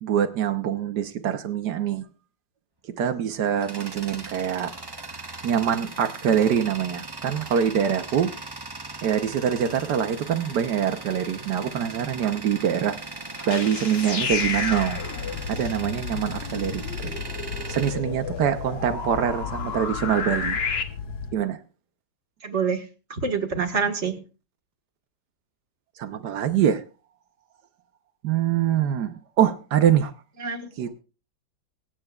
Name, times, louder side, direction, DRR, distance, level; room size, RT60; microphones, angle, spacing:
voice 1, 0.0-2.1 3.0-4.7 5.4-8.3 9.0-13.0 13.5-15.0 15.5-17.1 17.7-20.6 21.3-21.6 26.0-26.8 28.2-30.1 30.8-31.0, right 9 dB, 70° right, 10 dB, 1.3 m, -24 dB
Tools, 3.3-18.9, right 3 dB, 20° right, 0.6 m, -39 dB
sound 1, 12.9-21.3, left 6 dB, 65° left, 1.3 m, -36 dB
sound 2, 13.4-20.8, left 5 dB, 45° left, 1.0 m, -32 dB
voice 2, 22.4-22.8 23.1-24.2 30.4-30.7, right 5 dB, 40° right, 3 dB, 1.7 m, -26 dB
23.5 x 9.0 x 2.4 m, 0.33 s
omnidirectional pair, 1.9 m